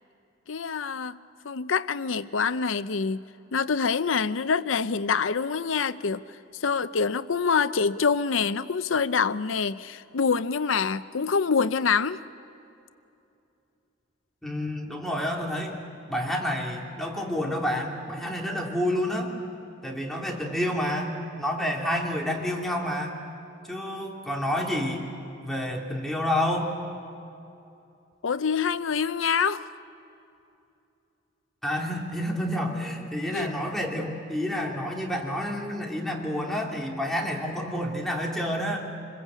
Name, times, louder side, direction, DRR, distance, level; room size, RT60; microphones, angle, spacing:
voice 1, 0.5-1.2 1.4-3.2 3.5-12.2 28.2-29.7 33.3-33.6, left 5 dB, 85° left, 0.7 m, -26 dB
voice 2, 14.4-15.7 16.1-19.3 19.8-23.1 23.6-25.1 25.4-26.7 31.6-38.9, equal, ahead, 2.8 m, -29 dB
27.0 x 21.5 x 8.3 m
head